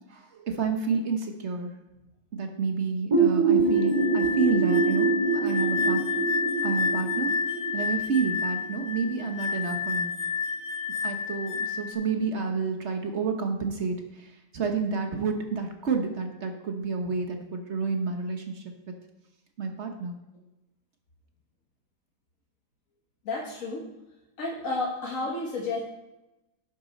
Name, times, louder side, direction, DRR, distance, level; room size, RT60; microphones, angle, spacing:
voice 1, 0.1-1.7 2.3-6.0 6.6-7.3 7.7-10.1 11.0-18.6 19.6-20.1, right 5 dB, 50° right, 5 dB, 1.1 m, -29 dB
sound 1, 3.1-8.7, right 4 dB, 20° right, 2.0 m, -25 dB
sound 2, 3.7-11.9, left 6 dB, 75° left, 2.3 m, -30 dB
voice 2, 23.2-23.8 24.4-25.8, left 3 dB, 55° left, -2 dB, 1.6 m, -31 dB
10.5 x 6.6 x 4.2 m, 0.98 s
omnidirectional pair, 1.8 m